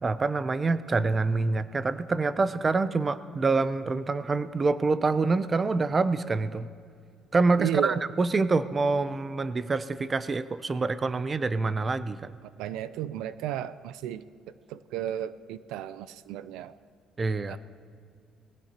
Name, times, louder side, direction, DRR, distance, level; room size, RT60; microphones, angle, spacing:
voice 1, 0.0-6.7 7.3-12.3 17.2-17.6, right 3 dB, 25° right, 14 dB, 0.5 m, -26 dB
voice 2, 7.6-8.0 12.6-14.2 14.7-16.7 17.5-17.6, right 11 dB, 90° right, 15 dB, 0.4 m, -33 dB
20.5 x 15.5 x 2.9 m, 2.2 s
cardioid pair, 120°, 0 cm